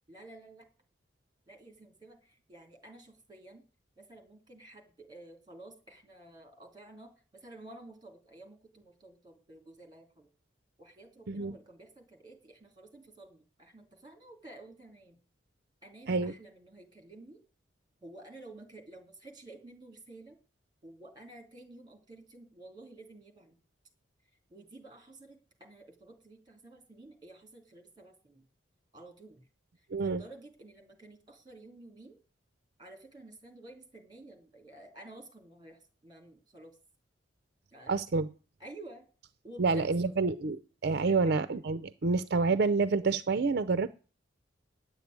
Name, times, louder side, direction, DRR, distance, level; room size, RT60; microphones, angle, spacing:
voice 1, 0.1-0.7 1.5-3.6 4.0-10.3 10.8-15.2 15.8-17.4 18.0-20.4 20.8-23.6 24.5-28.5 28.9-29.4 29.8-32.2 32.8-36.8 37.7-38.0 38.6-39.1 39.4-40.1 41.1-41.2, right 2 dB, 25° right, 4 dB, 3.2 m, -52 dB
voice 2, 29.9-30.2 37.9-38.3 39.6-40.6 40.8-43.9, right 4 dB, 60° right, 12 dB, 0.6 m, -28 dB
10.5 x 8.3 x 9.4 m, 0.38 s
head